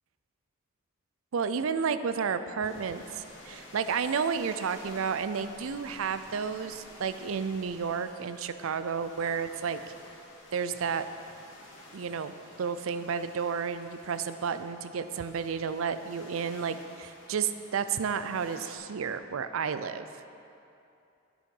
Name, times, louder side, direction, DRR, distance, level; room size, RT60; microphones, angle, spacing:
voice 1, 1.3-9.8 10.5-11.1 11.9-20.1, right 6 dB, 70° right, 11 dB, 0.4 m, -31 dB
sound 1, 2.6-18.8, left 1 dB, 60° left, 1.9 m, -52 dB
9.3 x 8.5 x 5.4 m, 2.7 s
head